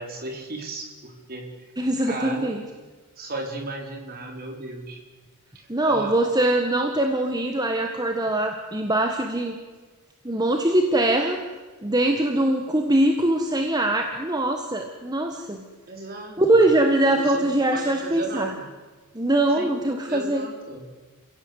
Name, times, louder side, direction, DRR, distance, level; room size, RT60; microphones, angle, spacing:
voice 1, 0.0-1.7 2.0-2.5 3.2-5.0 5.5-6.1 15.9-16.6 17.0-18.7 19.6-19.7 20.0-20.8, right 2 dB, 40° right, 2 dB, 4.7 m, -35 dB
voice 2, 1.8-2.6 5.7-9.6 10.2-11.4 11.8-15.6 16.4-18.5 19.1-20.4, right 1 dB, 20° right, 4 dB, 1.6 m, -22 dB
29.5 x 16.5 x 8.1 m, 1.3 s
head